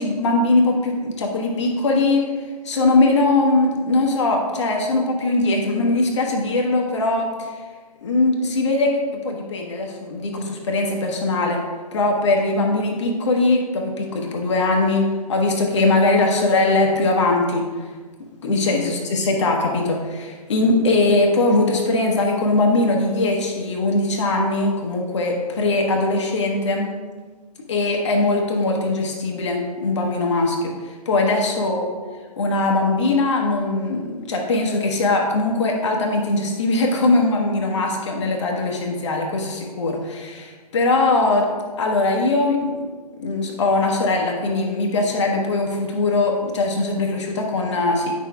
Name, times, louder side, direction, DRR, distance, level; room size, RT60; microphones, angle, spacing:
voice 1, 0.0-2.3 2.6-7.6 8.0-8.9 9.2-11.6 11.9-17.7 18.4-26.9 27.7-31.9 32.4-41.5 41.8-42.8 43.2-48.1, left 2 dB, 50° left, 1 dB, 1.0 m, -21 dB
9.2 x 6.0 x 2.3 m, 1.4 s
figure-of-eight pair, 125°, 20 cm